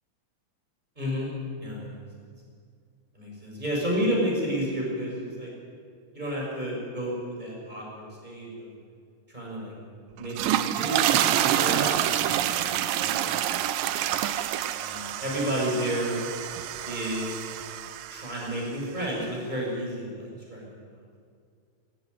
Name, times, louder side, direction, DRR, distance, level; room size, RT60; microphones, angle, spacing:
voice 1, 1.0-1.3 1.6-2.0 3.1-5.5 6.1-8.7 9.3-9.7 10.2-13.7 14.7-16.2 16.8-17.4 18.1-20.8, equal, 10° right, -3 dB, 6.6 m, -31 dB
sound 1, 10.2-18.5, right 12 dB, 85° right, 2.5 m, -27 dB
18.5 x 14.5 x 9.7 m, 2.2 s
omnidirectional pair, 4.0 m